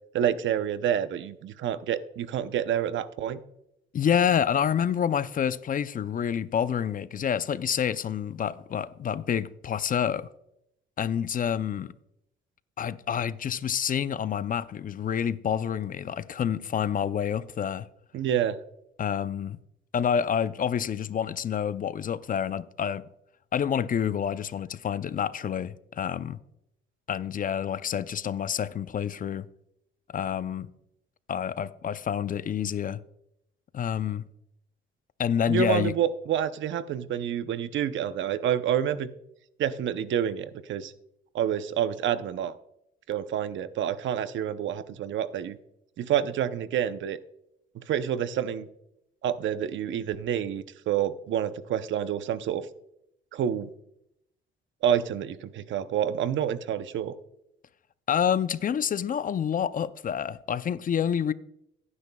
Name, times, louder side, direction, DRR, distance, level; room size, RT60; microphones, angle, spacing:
voice 1, 0.1-3.4 18.1-18.6 35.5-39.1 39.6-40.9 41.3-42.5 43.1-45.6 46.0-47.2 47.7-48.7 49.2-52.7 53.3-53.7 54.8-57.1, right 9 dB, 70° right, 0.7 m, -28 dB
voice 2, 3.9-10.3 11.0-11.9 12.8-17.9 19.0-19.6 19.9-23.0 23.5-26.4 27.1-29.5 30.1-30.7 31.3-33.0 33.7-34.3 35.2-35.9 58.1-61.3, left 8 dB, 45° left, 0.5 m, -28 dB
17.5 x 9.7 x 2.3 m
cardioid pair, 90°, 20 cm